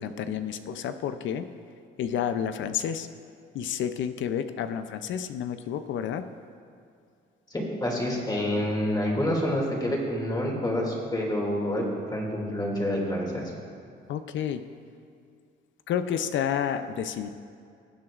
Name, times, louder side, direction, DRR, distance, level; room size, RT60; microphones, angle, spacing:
voice 1, 0.0-1.5 2.0-3.1 3.5-6.3 14.1-14.6 15.9-17.3, left 8 dB, 70° left, 10 dB, 0.5 m, -30 dB
voice 2, 7.5-13.5, left 1 dB, 20° left, -2 dB, 2.4 m, -28 dB
18.0 x 7.6 x 2.5 m, 2.3 s
cardioid pair, 90°, 20 cm